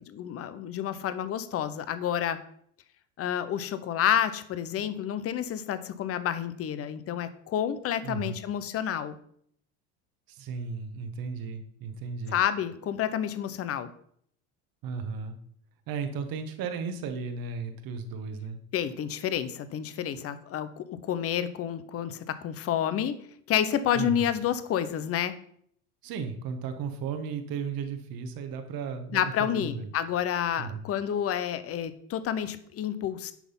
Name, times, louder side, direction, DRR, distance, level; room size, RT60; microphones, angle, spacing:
voice 1, 0.1-2.4 3.2-9.2 12.3-13.9 18.7-23.2 23.5-25.3 29.1-33.3, left 9 dB, 30° left, 13 dB, 0.8 m, -29 dB
voice 2, 8.0-8.4 10.3-12.4 14.8-15.3 15.9-18.6 23.9-24.3 26.0-29.9 30.6-30.8, right 5 dB, 50° right, 7 dB, 1.4 m, -35 dB
10.0 x 3.9 x 5.5 m, 0.64 s
supercardioid pair, 110°, 46 cm